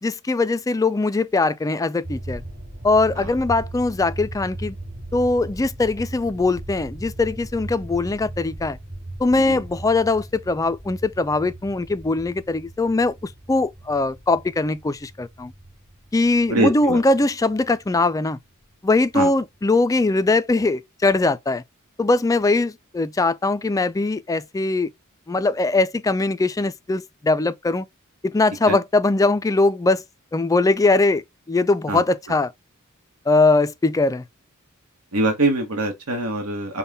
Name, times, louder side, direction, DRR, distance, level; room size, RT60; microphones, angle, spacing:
voice 1, 0.0-2.4 2.8-4.8 5.1-8.8 9.2-15.5 16.1-18.4 18.8-21.6 22.0-24.9 25.3-27.9 28.2-30.0 30.3-31.2 31.5-32.5 33.3-34.2, left 3 dB, 15° left, 0.3 m, -21 dB
sound 1, 2.0-18.0 18.3-18.4 18.7-18.8 19.0-19.3 19.5-19.8 20.2-20.3, right 1 dB, 45° right, 2.1 m, -38 dB
voice 2, 16.5-17.0 19.1-19.3 28.7-28.8 31.9-32.0 35.1-36.8, right 2 dB, 70° right, 1.1 m, -23 dB
5.4 x 2.2 x 3.9 m
head